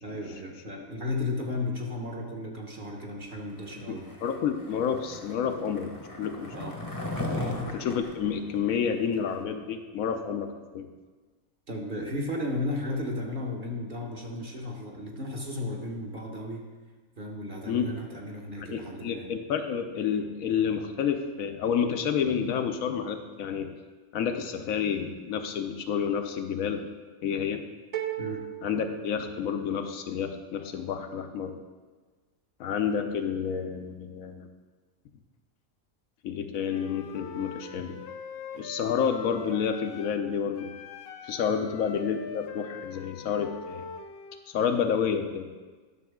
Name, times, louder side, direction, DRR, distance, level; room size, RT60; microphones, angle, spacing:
voice 1, 0.0-4.0 6.5-6.7 7.4-7.6 11.7-16.6 17.2-19.3 28.2-28.4 41.5-41.7, left 2 dB, 40° right, 0 dB, 1.2 m, -34 dB
voice 2, 3.9-6.5 7.7-10.9 17.7-17.9 18.7-23.7 24.1-26.9 27.2-27.7 28.6-31.6 32.6-34.5 36.2-38.0 38.5-40.7 41.2-43.9 44.5-45.5, left 7 dB, 75° left, 7 dB, 1.0 m, -29 dB
Skateboard, 4.0-9.4, left 2 dB, 15° left, 0.8 m, -37 dB
sound 1, 27.9-29.9, right 12 dB, 75° right, 0.3 m, -37 dB
Wind instrument woodwind instrument, 36.6-40.3 40.5-44.4, left 5 dB, 60° left, 0.7 m, -42 dB
11.0 x 6.2 x 3.6 m, 1.4 s
omnidirectional pair, 1.5 m